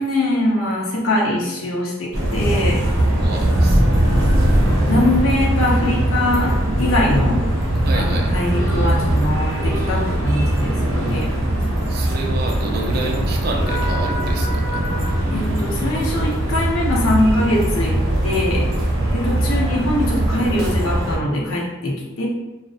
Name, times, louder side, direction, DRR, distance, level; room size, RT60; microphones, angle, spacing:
voice 1, 0.0-2.9 3.5-4.5 4.9-7.5 7.9-11.3 15.3-18.7 19.1-22.2, left 1 dB, 80° left, -3 dB, 0.6 m, -22 dB
sound 1, 2.1-21.2, right 1 dB, 85° right, 0.7 m, -20 dB
voice 2, 3.2-4.1 7.8-8.3 11.9-14.8, right 2 dB, 50° right, 1 dB, 0.3 m, -29 dB
2.4 x 2.0 x 2.5 m, 1.1 s
head